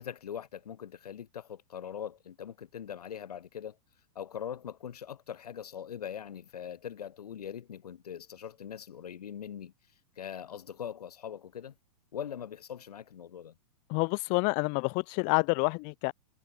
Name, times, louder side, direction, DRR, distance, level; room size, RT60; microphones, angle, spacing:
voice 1, 0.0-3.8 4.2-9.7 10.2-11.8 12.1-13.6, left 9 dB, 90° left, 5.1 m, -41 dB
voice 2, 13.9-16.1, left 38 dB, 40° left, 1.5 m, -28 dB
hypercardioid pair, 135°, 19 cm